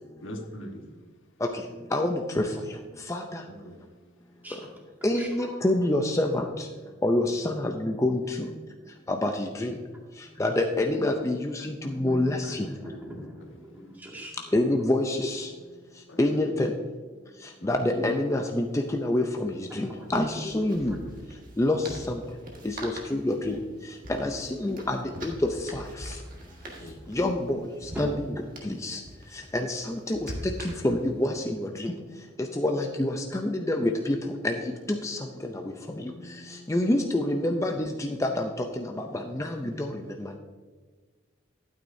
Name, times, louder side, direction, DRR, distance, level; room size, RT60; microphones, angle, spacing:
voice 1, 0.2-1.0 3.5-3.8 16.1-16.2 17.6-17.7 24.3-24.4 26.8-27.0, equal, 80° left, 2 dB, 1.4 m, -41 dB
voice 2, 1.9-2.5 3.1-3.4 5.0-6.7 7.0-8.5 9.1-9.7 10.4-12.7 14.5-15.5 16.2-16.7 17.6-21.0 21.6-22.2 22.6-23.6 24.1-25.3 25.7-26.1 27.1-27.6 28.0-28.3 28.6-29.0 29.5-30.3 30.6-31.9 32.4-34.2 34.4-34.6 34.9-35.2 35.5-35.6 36.0-36.1 36.7-38.5 38.8-39.9 40.2-40.3, left 1 dB, 15° left, 3 dB, 0.5 m, -27 dB
voice 3, 5.1-5.6 11.8-14.4 19.7-20.1 20.9-21.0 26.5-26.6 27.9-28.0, equal, 10° right, -3 dB, 2.1 m, -43 dB
sound 1, 18.0-18.1 18.4-18.5 20.0-31.2, equal, 45° right, 1.7 m, -43 dB
11.5 x 9.2 x 2.7 m, 1.4 s
head